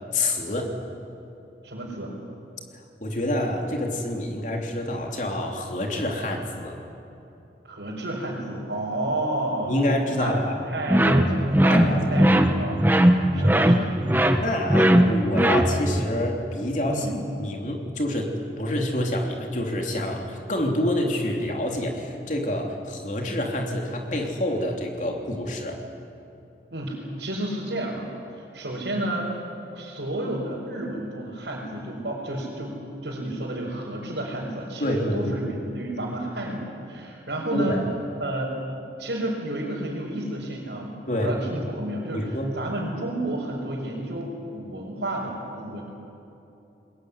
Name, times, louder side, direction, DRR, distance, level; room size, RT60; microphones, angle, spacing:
voice 1, 0.1-0.7 3.0-6.8 9.7-10.6 11.7-12.3 13.3-13.5 14.3-17.1 17.4-18.3 18.6-25.8 34.8-35.2 37.5-37.8 41.1-41.3 42.1-42.6, left 1 dB, 45° left, 1 dB, 3.3 m, -27 dB
voice 2, 1.6-2.1 7.6-9.7 10.1-14.0 16.9-17.2 26.7-29.4 29.7-32.8 33.0-37.8 38.2-38.5 39.0-45.8, right 1 dB, 80° right, -6 dB, 4.8 m, -31 dB
sound 1, 10.9-16.0, right 1 dB, 10° right, 1.2 m, -19 dB
21.5 x 21.0 x 9.7 m, 2.9 s
head